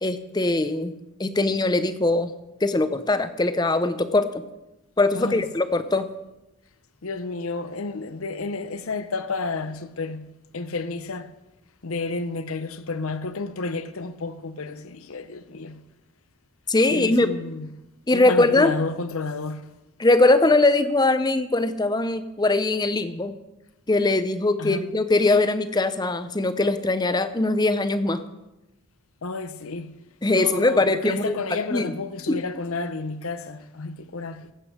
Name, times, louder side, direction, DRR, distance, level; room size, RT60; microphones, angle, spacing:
voice 1, 0.0-0.9 1.2-2.3 2.6-4.3 5.0-6.0 16.7-17.3 18.1-18.7 20.0-23.3 23.9-28.2 30.2-31.3 31.7-31.9 32.3-32.4, left 2 dB, 20° left, 0.5 m, -21 dB
voice 2, 5.1-5.5 7.0-11.3 11.8-15.8 16.9-17.8 18.1-19.7 24.6-24.9 29.2-30.0 30.3-34.5, left 3 dB, 75° left, 0.8 m, -31 dB
15.5 x 8.2 x 5.0 m
head